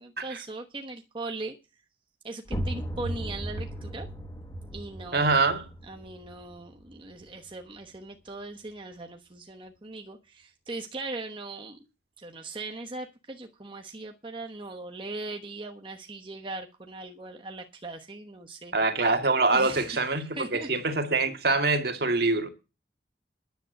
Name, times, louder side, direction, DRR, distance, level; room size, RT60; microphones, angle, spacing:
voice 1, 0.0-1.5 2.2-4.1 4.7-5.3 5.9-11.8 12.2-18.8 19.5-20.0 20.4-20.7, right 2 dB, 30° right, 1.1 m, -39 dB
sound 1, 2.5-8.0, equal, 20° left, 1.4 m, -37 dB
voice 2, 5.1-5.6 18.7-20.2 20.5-22.5, right 3 dB, 60° right, 2.1 m, -24 dB
10.5 x 7.8 x 7.9 m
head